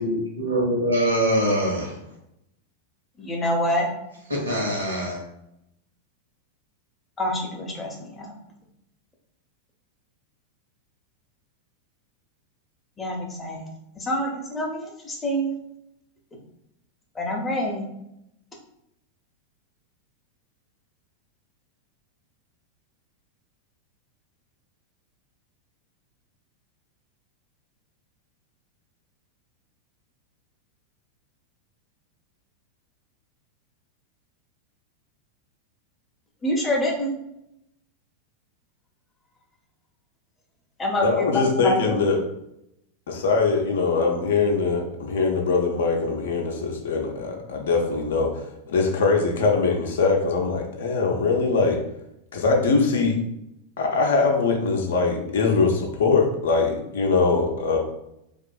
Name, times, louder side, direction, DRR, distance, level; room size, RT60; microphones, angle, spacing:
voice 1, 0.0-1.9 4.3-5.2, equal, 80° right, -2 dB, 0.9 m, -23 dB
voice 2, 3.2-3.9 7.2-8.3 13.0-13.6 14.0-15.6 17.2-17.8 36.4-37.1 40.8-41.3 41.6-42.0, equal, 15° left, 0 dB, 0.6 m, -26 dB
voice 3, 41.0-42.2 43.1-51.8 52.3-53.2 53.8-57.8, left 4 dB, 60° left, 1 dB, 0.5 m, -22 dB
2.6 x 2.4 x 2.2 m, 0.82 s
figure-of-eight pair, 90°, 0 cm